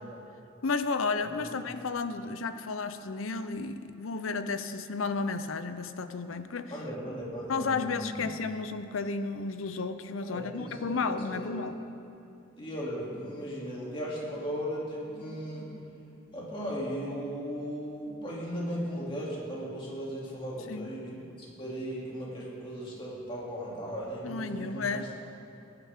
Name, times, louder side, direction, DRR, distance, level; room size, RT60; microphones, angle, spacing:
voice 1, 0.6-6.7 7.5-11.7 20.7-20.9 24.2-25.1, left 4 dB, 75° left, 10 dB, 0.7 m, -32 dB
voice 2, 6.7-8.3 10.2-11.5 12.6-15.7 16.3-25.1, equal, 25° left, -6 dB, 2.8 m, -37 dB
20.0 x 10.5 x 3.6 m, 2.6 s
head